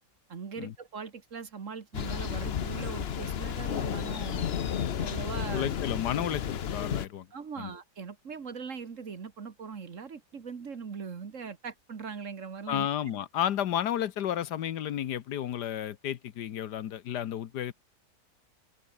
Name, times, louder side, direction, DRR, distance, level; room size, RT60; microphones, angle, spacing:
voice 1, 0.3-4.5 5.0-5.7 7.3-12.9, right 5 dB, 50° right, 1.8 m, -40 dB
Thunder, 1.9-7.1, left 8 dB, 45° left, 0.9 m, -32 dB
voice 2, 5.5-7.3 7.6-7.7 12.7-17.7, left 10 dB, 75° left, 1.5 m, -32 dB
open air
omnidirectional pair, 1.8 m